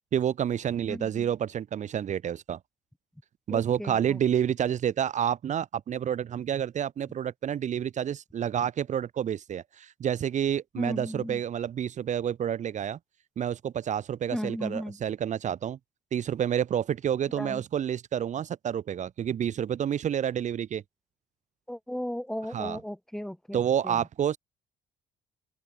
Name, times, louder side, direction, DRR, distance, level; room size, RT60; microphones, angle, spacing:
voice 1, 0.1-2.6 3.5-13.0 13.4-15.8 16.1-20.8 22.5-22.8 23.5-24.4, right 9 dB, 45° right, 1.0 m, -29 dB
voice 2, 0.9-1.3 3.5-4.2 10.8-11.4 14.3-15.0 17.3-17.6 21.7-23.6 23.8-24.1, equal, 5° left, 2.0 m, -36 dB
open air
cardioid pair, 110°, 17 cm